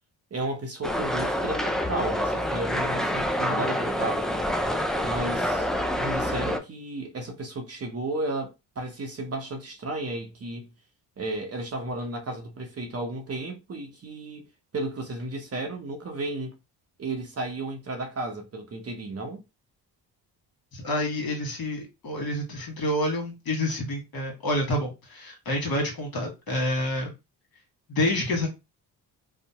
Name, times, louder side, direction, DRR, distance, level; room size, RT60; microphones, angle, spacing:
voice 1, 0.3-4.3 5.0-5.7 6.0-10.7 11.2-14.4 14.7-16.5 17.0-19.4, right 2 dB, 35° right, 0.8 m, -33 dB
sound 1, 0.8-6.6, equal, ahead, 0.3 m, -27 dB
voice 2, 20.7-27.1 27.9-28.5, left 1 dB, 55° left, 1.4 m, -28 dB
2.8 x 2.0 x 2.8 m
supercardioid pair, 60°, 44 cm